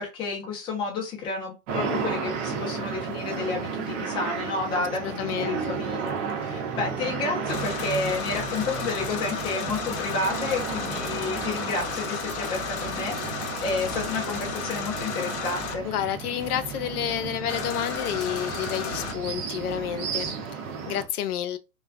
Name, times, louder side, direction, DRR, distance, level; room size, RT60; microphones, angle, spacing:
voice 1, 0.0-6.1 6.4-13.2 13.6-15.8, left 4 dB, 10° left, 0.4 m, -31 dB
sound 1, 1.7-21.0, right 6 dB, 55° right, 0.8 m, -33 dB
voice 2, 4.7-5.8 15.8-20.3 20.9-21.6, left 10 dB, 80° left, 0.5 m, -30 dB
sound 2, 7.5-15.7 17.5-19.1, left 5 dB, 50° left, 0.7 m, -33 dB
sound 3, 7.5-20.3, right 2 dB, 20° right, 0.9 m, -46 dB
2.3 x 2.3 x 2.4 m
hypercardioid pair, 130°, 45 cm